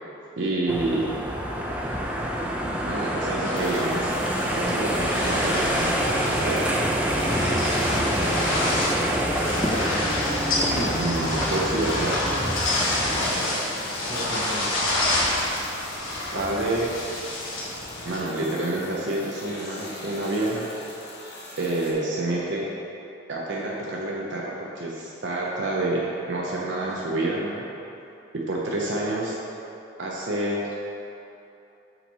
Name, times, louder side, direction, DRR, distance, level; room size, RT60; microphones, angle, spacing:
voice 1, 0.4-1.2 2.8-4.1 4.4-6.7 9.4-9.6 10.7-12.6 16.3-17.0 18.0-20.7 21.6-22.7 23.3-27.7 28.3-29.4 30.0-30.7, right 2 dB, 65° right, -4 dB, 0.7 m, -28 dB
sound 1, 0.7-13.3, equal, 5° right, 0.4 m, -26 dB
sound 2, 3.4-18.2, left 1 dB, 85° left, 1.2 m, -28 dB
sound 3, 3.5-21.9, left 1 dB, 55° left, 1.1 m, -44 dB
voice 2, 7.2-9.4 14.1-15.3, equal, 25° right, -10 dB, 0.9 m, -38 dB
5.7 x 5.4 x 4.1 m, 2.8 s
head